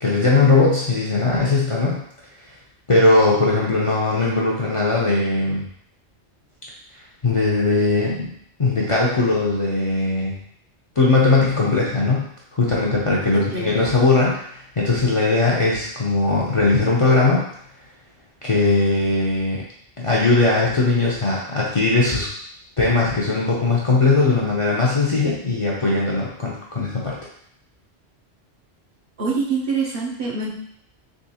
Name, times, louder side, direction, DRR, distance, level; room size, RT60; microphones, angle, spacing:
voice 1, 0.0-2.0 2.9-5.6 7.2-8.3 8.6-10.4 11.0-12.2 12.5-17.4 18.4-19.6 20.0-22.3 22.8-27.2, left 3 dB, 40° left, -6 dB, 0.5 m, -19 dB
voice 2, 13.3-13.8 29.2-30.5, right 4 dB, 60° right, -3 dB, 0.8 m, -25 dB
3.7 x 2.9 x 2.8 m, 0.68 s
omnidirectional pair, 1.1 m